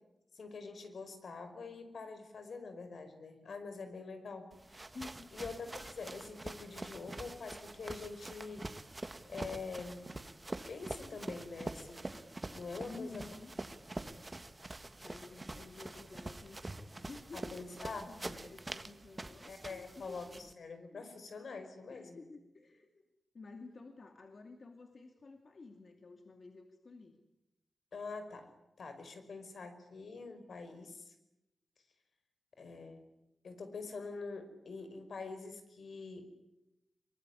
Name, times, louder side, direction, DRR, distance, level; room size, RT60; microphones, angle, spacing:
voice 1, 0.3-4.9 5.3-8.7 9.3-10.1 10.7-12.1 12.5-13.3 17.3-18.5 19.5-22.2 27.9-28.5 28.8-31.2 32.6-33.0 33.4-36.2, left 4 dB, 75° left, 8 dB, 5.2 m, -45 dB
sound 1, 4.5-20.5, right 2 dB, 25° right, 1.6 m, -45 dB
voice 2, 4.9-5.3 12.8-13.6 15.0-20.3 20.9-21.0 21.9-23.0 23.3-27.2, left 3 dB, 50° left, 5 dB, 2.5 m, -52 dB
24.5 x 23.5 x 9.9 m, 0.92 s
wide cardioid pair, 130°, 0 cm